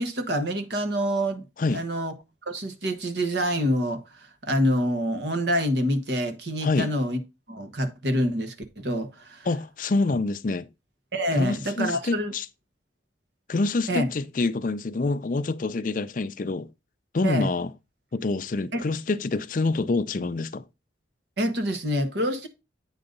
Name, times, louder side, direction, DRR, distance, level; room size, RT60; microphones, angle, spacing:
voice 1, 0.0-1.4 1.7-2.1 2.5-7.2 7.5-9.5 11.1-12.3 13.9-14.1 17.2-17.5 18.7-18.8 21.4-22.5, equal, 65° right, 1.4 m, -26 dB
voice 2, 9.5-10.7 11.3-12.5 13.5-16.7 17.1-17.7 18.1-20.6, left 3 dB, 45° left, 0.5 m, -26 dB
8.8 x 4.0 x 5.2 m
head